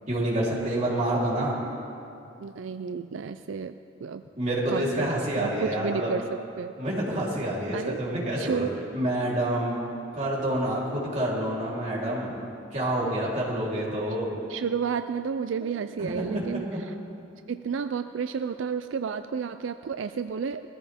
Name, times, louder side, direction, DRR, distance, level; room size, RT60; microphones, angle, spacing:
voice 1, 0.1-1.5 4.4-6.1 6.8-8.6 8.9-9.8 10.1-12.4 12.7-14.3 15.6-15.7 16.0-16.8, right 1 dB, 40° right, -6 dB, 3.7 m, -28 dB
voice 2, 2.4-4.2 4.7-6.8 7.7-8.0 8.4-8.8 14.5-16.7 17.5-20.6, right 6 dB, 90° right, 10 dB, 0.4 m, -31 dB
21.0 x 14.5 x 3.6 m, 2.6 s
head